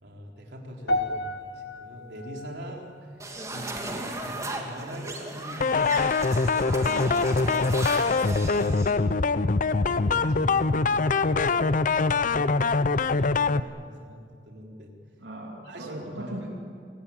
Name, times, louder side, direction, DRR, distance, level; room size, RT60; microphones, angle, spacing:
voice 1, 0.0-6.0 6.5-9.3 9.7-11.7 12.1-14.9 15.6-16.4, equal, 70° right, 0 dB, 3.9 m, -42 dB
sound 1, 0.9-5.3 5.5-5.9 6.6-6.7, left 1 dB, 75° left, 2.0 m, -35 dB
sound 2, 3.2-8.9, right 2 dB, 20° right, 2.6 m, -36 dB
sound 3, 5.6-13.6, left 4 dB, 50° left, 0.7 m, -23 dB
voice 2, 6.9-7.3 15.2-16.5, right 1 dB, 90° right, -1 dB, 3.0 m, -39 dB
29.0 x 18.5 x 8.9 m, 2.2 s
head